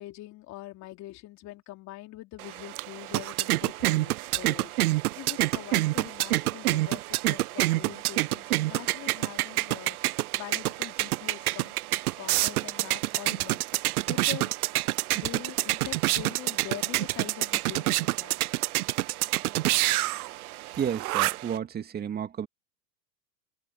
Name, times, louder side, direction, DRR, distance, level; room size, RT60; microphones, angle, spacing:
voice 1, 0.0-11.7 12.2-13.6 14.1-14.8 15.1-18.5, left 17 dB, 35° left, 3.5 m, -43 dB
sound 1, 2.4-21.6, right 18 dB, 60° right, 0.7 m, -28 dB
voice 2, 20.8-22.5, right 8 dB, 20° right, 2.4 m, -32 dB
hypercardioid pair, 130°, 50 cm